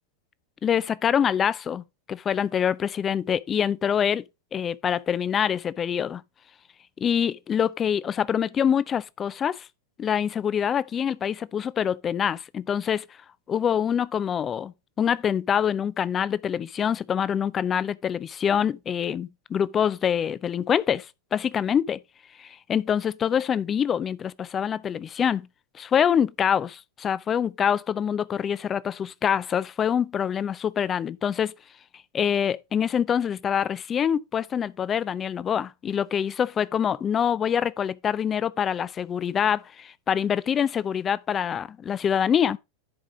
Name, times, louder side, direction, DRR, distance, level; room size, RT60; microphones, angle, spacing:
voice 1, 0.6-1.8 2.1-4.2 4.5-6.2 7.0-9.7 10.0-13.0 13.5-21.1 21.3-22.0 22.4-25.5 25.7-31.5 32.1-42.6, left 8 dB, 25° left, 0.4 m, -25 dB
10.5 x 4.8 x 3.8 m
figure-of-eight pair, 90°, 0 cm